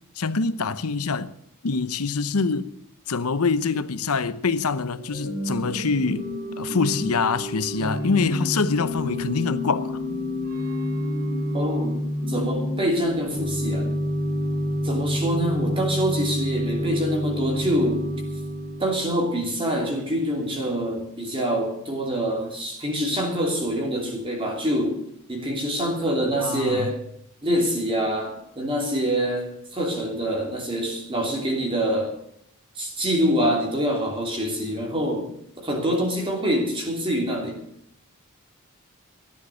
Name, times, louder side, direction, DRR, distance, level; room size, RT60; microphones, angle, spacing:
voice 1, 0.2-1.3 1.6-2.7 3.1-6.3 6.6-10.0 26.4-26.9, left 4 dB, 85° left, 0.8 m, -25 dB
Organ / Church bell, 4.9-19.1, left 1 dB, 45° right, 3.3 m, -28 dB
voice 2, 11.5-12.0 12.3-13.9 14.8-18.0 18.8-25.0 25.3-27.0 27.4-32.1 32.8-35.3 35.6-37.6, equal, 25° right, 3.2 m, -25 dB
14.5 x 11.0 x 6.4 m
head